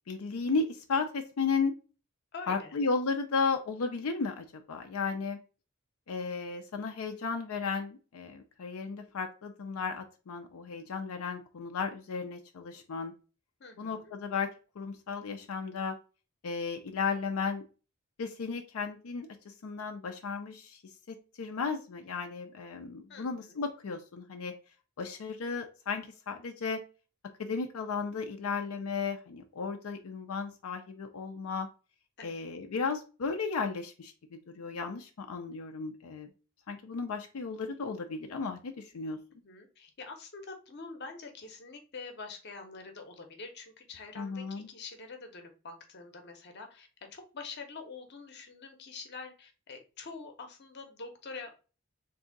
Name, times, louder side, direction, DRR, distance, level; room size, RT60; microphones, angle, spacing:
voice 1, 0.1-1.7 2.5-5.4 6.1-13.1 13.8-14.5 14.8-16.0 16.4-17.6 18.2-19.3 19.6-20.8 21.1-24.5 25.0-26.8 27.4-31.7 32.2-36.3 36.7-39.2 44.2-44.7, left 4 dB, 85° left, 5 dB, 0.5 m, -34 dB
voice 2, 2.3-2.8 13.6-14.1 23.1-23.6 32.2-32.4 39.4-51.6, left 4 dB, 50° left, 5 dB, 0.8 m, -46 dB
3.6 x 2.7 x 3.8 m, 0.35 s
head